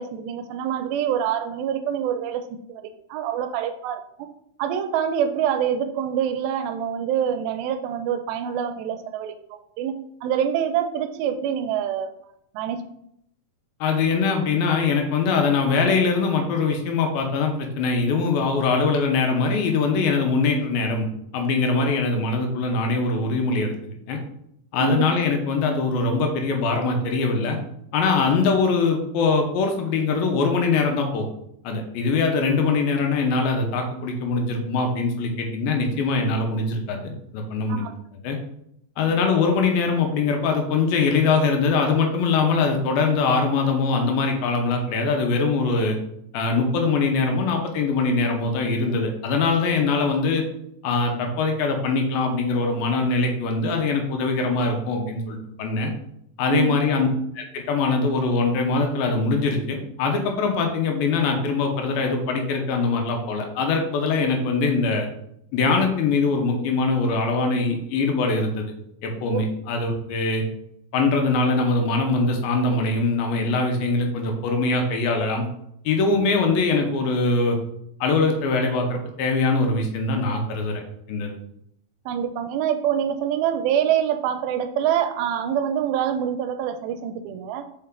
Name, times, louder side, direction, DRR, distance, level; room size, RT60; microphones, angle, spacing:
voice 1, 0.0-4.3 4.6-9.4 9.8-9.9 10.2-12.1 12.5-12.8 24.8-25.1 37.7-37.9 56.5-56.8 69.3-69.4 82.1-87.7, right 9 dB, 85° right, 8 dB, 2.3 m, -25 dB
voice 2, 13.8-21.1 21.3-24.2 24.7-27.6 27.9-31.3 31.6-37.8 38.2-38.4 39.0-46.0 46.3-50.4 50.8-55.9 56.4-57.1 57.4-65.1 65.5-68.6 69.0-70.4 70.9-75.4 75.9-77.6 78.0-80.8 81.1-81.3, left 4 dB, 80° left, 3 dB, 2.6 m, -22 dB
5.6 x 4.5 x 3.6 m, 0.74 s
omnidirectional pair, 4.4 m